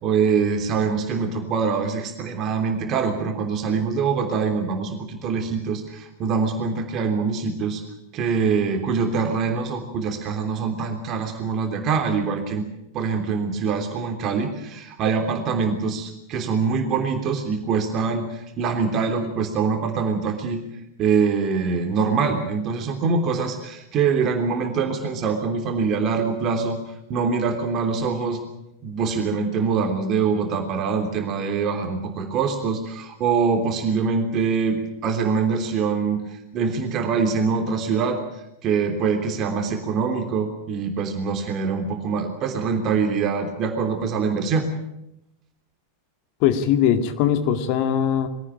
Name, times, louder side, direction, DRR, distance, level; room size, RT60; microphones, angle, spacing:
voice 1, 0.0-7.8 8.1-12.7 12.9-20.6 21.0-26.8 27.1-28.4 28.8-36.2 36.5-38.2 38.6-44.7, right 5 dB, 35° right, 5 dB, 3.3 m, -24 dB
voice 2, 46.4-48.3, left 9 dB, 45° left, 8 dB, 2.1 m, -20 dB
23.0 x 17.0 x 8.9 m, 0.84 s
figure-of-eight pair, 90°, 0 cm